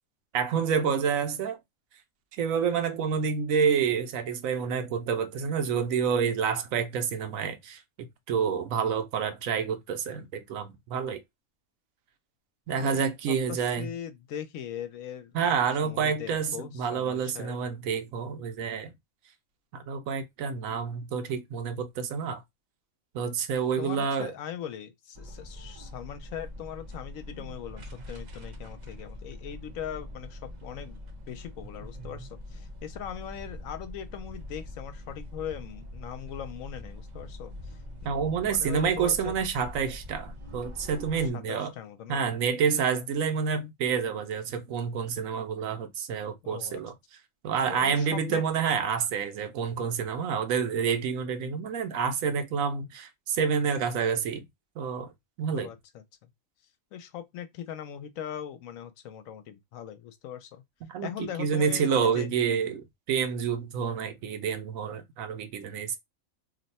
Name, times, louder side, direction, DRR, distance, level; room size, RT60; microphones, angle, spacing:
voice 1, 0.3-1.6 2.4-11.2 12.7-13.9 15.3-18.9 19.7-22.4 23.1-24.3 38.0-41.7 42.1-46.9 47.4-54.5 54.8-55.1 55.4-55.7 60.9-66.0, right 6 dB, 85° right, 1.1 m, -28 dB
voice 2, 12.7-17.6 23.8-31.0 31.3-38.2 38.4-39.3 41.2-42.2 46.4-46.8 47.7-48.4 55.5-55.8 56.9-60.6 61.0-62.3, left 9 dB, 80° left, 1.0 m, -40 dB
sound 1, 25.1-41.3, left 1 dB, 45° right, 0.6 m, -43 dB
2.7 x 2.2 x 4.0 m
omnidirectional pair, 1.4 m